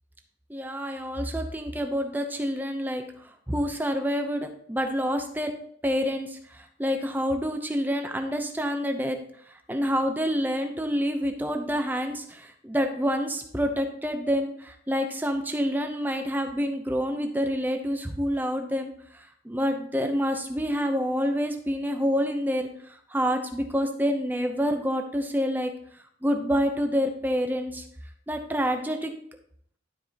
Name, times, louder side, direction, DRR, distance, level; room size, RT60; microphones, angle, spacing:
voice 1, 0.5-5.5 5.8-9.2 9.5-25.7 26.2-27.8 28.3-29.1, equal, 10° right, 5 dB, 0.7 m, -28 dB
12.0 x 4.8 x 2.9 m, 0.66 s
head